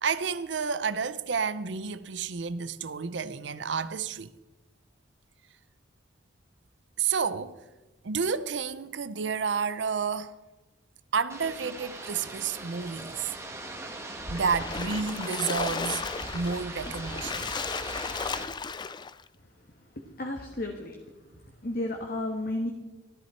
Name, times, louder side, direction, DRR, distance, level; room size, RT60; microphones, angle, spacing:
voice 1, 0.0-4.3 7.0-7.6 8.0-10.4 11.1-13.3 14.3-16.0 16.3-17.5, right 5 dB, 70° right, 0.6 m, -30 dB
sound 1, 11.3-18.4, right 2 dB, 15° right, 1.3 m, -40 dB
Splash splatter, 14.3-19.2, left 5 dB, 25° left, 0.4 m, -35 dB
voice 2, 20.2-20.9 21.6-22.7, left 1 dB, 55° left, 1.4 m, -32 dB
14.5 x 13.5 x 4.4 m
head